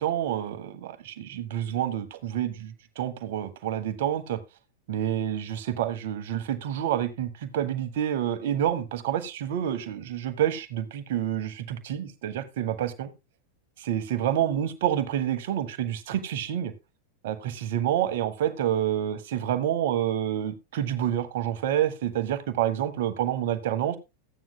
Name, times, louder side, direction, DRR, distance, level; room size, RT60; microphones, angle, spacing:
voice 1, 0.0-4.4 4.9-13.1 13.8-16.7 17.2-24.0, right 11 dB, 55° right, 8 dB, 1.2 m, -28 dB
14.5 x 9.2 x 2.3 m, 0.23 s
figure-of-eight pair, 90°, 0 cm